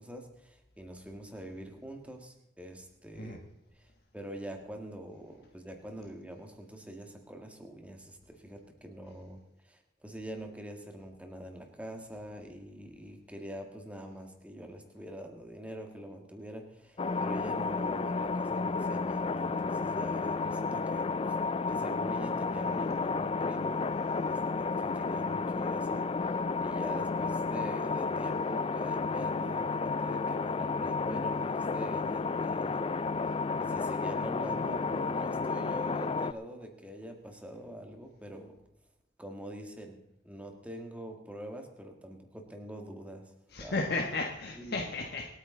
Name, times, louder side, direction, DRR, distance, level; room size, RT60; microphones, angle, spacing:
voice 1, 0.0-3.4 3.8-21.4 21.7-23.9 24.2-32.9 33.6-38.5 39.2-40.0 40.2-43.3 43.6-43.8 44.6-44.8, right 1 dB, 10° right, 3 dB, 1.9 m, -44 dB
sound 1, 17.0-36.3, left 4 dB, 30° left, 0.4 m, -32 dB
voice 2, 43.5-45.3, left 3 dB, 65° left, 1 dB, 1.4 m, -34 dB
26.5 x 9.1 x 3.9 m, 0.90 s
head